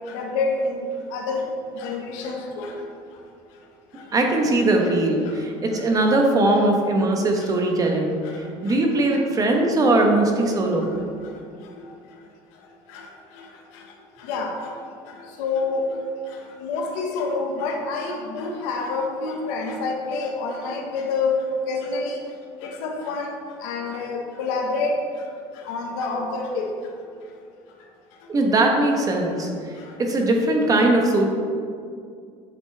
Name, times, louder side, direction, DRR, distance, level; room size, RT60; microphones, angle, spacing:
voice 1, 0.1-0.8 1.1-1.4 1.7-2.7 6.1-6.2 12.9-13.0 14.3-14.5 15.4-15.8 16.6-21.4 21.7-22.2 22.6-23.3 23.6-24.9 25.7-26.7, left 4 dB, 80° left, 1 dB, 1.4 m, -27 dB
voice 2, 4.1-8.1 8.6-10.9 28.3-29.7 30.0-31.2, right 2 dB, 30° right, 2 dB, 1.2 m, -20 dB
8.9 x 7.1 x 3.4 m, 2.3 s
cardioid pair, 125°, 13 cm